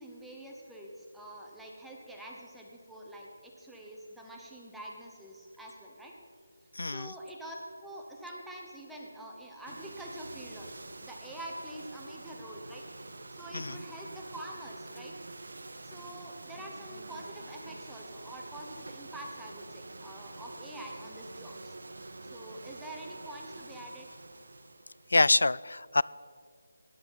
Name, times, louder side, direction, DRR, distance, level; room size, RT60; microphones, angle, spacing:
voice 1, 0.0-6.1 6.8-7.6 7.8-21.8 22.2-24.1, right 1 dB, ahead, -3 dB, 0.9 m, -46 dB
voice 2, 6.8-7.1 13.5-13.8 25.1-26.0, left 2 dB, 85° left, 21 dB, 0.3 m, -25 dB
sound 1, 9.7-25.2, right 2 dB, 70° right, 1.2 m, -47 dB
17.0 x 9.7 x 5.7 m, 2.3 s
figure-of-eight pair, 175°, 0 cm